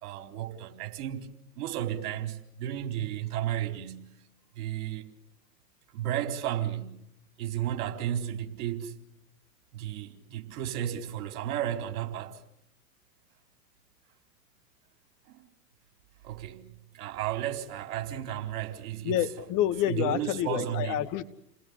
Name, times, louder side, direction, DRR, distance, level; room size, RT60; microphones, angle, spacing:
voice 1, 0.0-1.3 1.6-4.1 4.6-5.1 5.9-7.0 7.4-9.0 9.7-12.4 15.3-15.4 16.2-19.2 19.9-21.0, right 11 dB, 60° right, 4.3 m, -33 dB
voice 2, 19.0-21.2, left 12 dB, 40° left, 2.2 m, -28 dB
30.0 x 20.5 x 8.4 m
hypercardioid pair, 110°, 49 cm